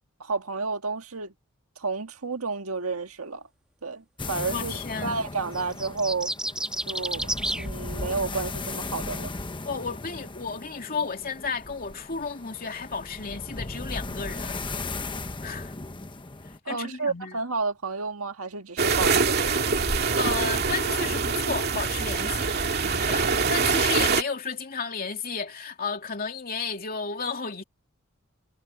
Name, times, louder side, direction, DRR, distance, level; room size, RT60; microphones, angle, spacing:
voice 1, 0.2-1.3 1.8-3.5 3.8-6.3 6.9-9.3 16.6-19.9, right 4 dB, 90° right, 1.7 m, -31 dB
sound 1, 4.2-16.6, left 3 dB, 25° left, 1.0 m, -37 dB
voice 2, 4.5-5.2 9.6-14.6 15.4-15.7 16.4-17.4 20.2-22.5 22.8-27.6, left 5 dB, 45° left, 2.7 m, -33 dB
sound 2, 5.5-7.7, right 1 dB, 5° right, 1.8 m, -30 dB
sound 3, 18.8-24.2, right 4 dB, 50° right, 2.3 m, -24 dB
head